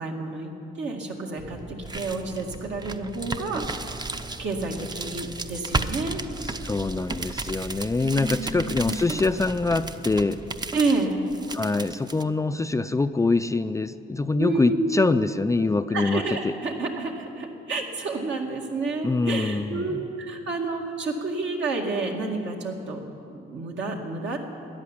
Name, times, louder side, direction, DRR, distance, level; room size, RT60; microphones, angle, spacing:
voice 1, 0.0-3.8 4.4-6.2 8.0-8.9 10.7-11.2 14.4-15.0 15.9-23.0 23.3-24.4, right 3 dB, 65° right, 1 dB, 2.3 m, -29 dB
sound 1, 1.4-12.2, right 3 dB, 20° right, 0.7 m, -34 dB
voice 2, 6.6-10.4 11.5-16.5 19.0-20.0, left 3 dB, 15° left, 10 dB, 0.4 m, -24 dB
14.0 x 10.5 x 10.0 m, 2.7 s
cardioid pair, 90°, 20 cm